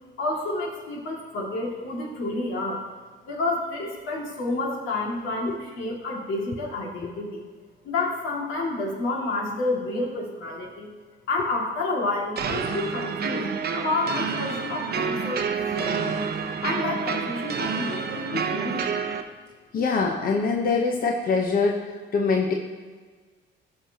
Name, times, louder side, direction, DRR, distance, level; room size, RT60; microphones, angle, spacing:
voice 1, 0.2-2.8 3.3-7.4 7.8-10.9 11.3-13.4 13.7-16.2 16.6-18.9, left 2 dB, 80° left, -2 dB, 2.2 m, -29 dB
sound 1, 12.4-19.2, right 6 dB, 55° right, 0.7 m, -28 dB
voice 2, 19.7-22.5, left 4 dB, 45° left, 1 dB, 0.9 m, -24 dB
14.0 x 5.8 x 2.8 m, 1.5 s
cardioid pair, 90°, 20 cm